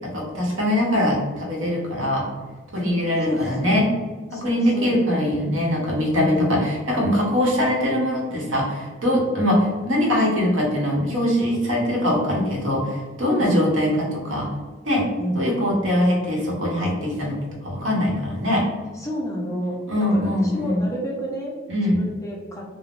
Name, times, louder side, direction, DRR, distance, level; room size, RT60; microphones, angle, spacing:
voice 1, 0.0-2.3 2.7-3.9 4.3-14.5 14.8-15.1 15.3-18.7 19.9-20.8 21.7-22.0, left 1 dB, 80° right, -2 dB, 0.9 m, -22 dB
voice 2, 2.8-3.8 4.3-5.0 6.2-6.5 13.4-13.6 15.2-15.4 19.0-19.8 20.1-21.5 21.8-22.6, equal, 15° left, -3 dB, 0.4 m, -30 dB
3.4 x 2.0 x 2.4 m, 1.4 s
head